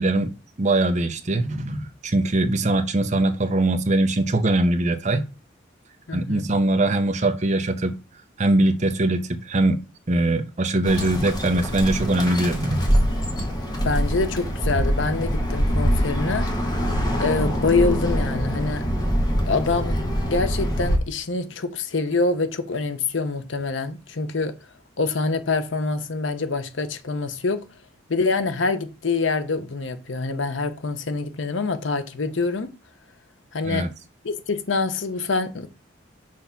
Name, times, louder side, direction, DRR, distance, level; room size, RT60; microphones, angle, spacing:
voice 1, 0.0-5.3 6.1-7.9 8.4-9.8 10.1-13.0 33.6-33.9, right 2 dB, 40° right, 0.7 m, -22 dB
voice 2, 6.1-6.5 13.8-16.9 17.2-18.8 19.5-19.9 20.3-24.5 25.0-27.6 28.1-32.7 33.5-33.9 34.2-35.7, left 3 dB, 75° left, 0.8 m, -25 dB
Bird, 10.8-21.0, equal, 20° left, 1.4 m, -24 dB
6.2 x 3.5 x 5.7 m
head